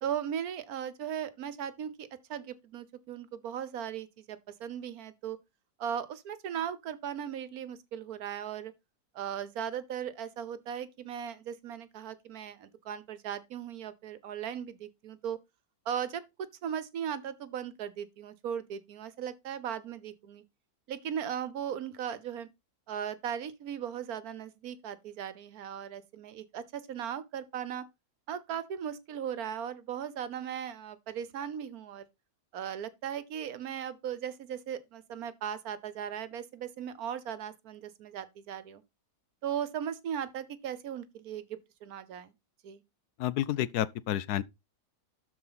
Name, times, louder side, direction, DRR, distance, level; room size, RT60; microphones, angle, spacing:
voice 1, 0.0-5.4 5.8-8.7 9.1-15.4 15.8-20.4 20.9-22.5 22.9-27.9 28.3-32.1 32.5-38.8 39.4-42.3 42.6-42.8, right 9 dB, 70° right, 1.3 m, -37 dB
voice 2, 43.2-44.4, left 12 dB, 80° left, 1.2 m, -30 dB
12.5 x 4.7 x 4.0 m
omnidirectional pair, 1.7 m